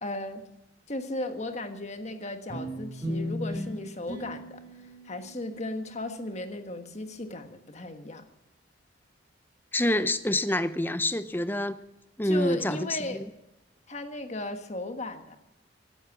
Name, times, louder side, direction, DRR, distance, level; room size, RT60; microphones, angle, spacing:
voice 1, 0.0-0.5 0.9-4.6 5.0-8.2 12.2-13.3 13.9-15.4, left 2 dB, 35° left, 7 dB, 1.5 m, -36 dB
sound 1, 2.5-7.1, equal, 20° right, 7.3 m, -38 dB
voice 2, 9.7-11.8 12.2-13.2, left 1 dB, 10° left, 13 dB, 0.6 m, -27 dB
16.5 x 11.5 x 6.1 m, 0.92 s
head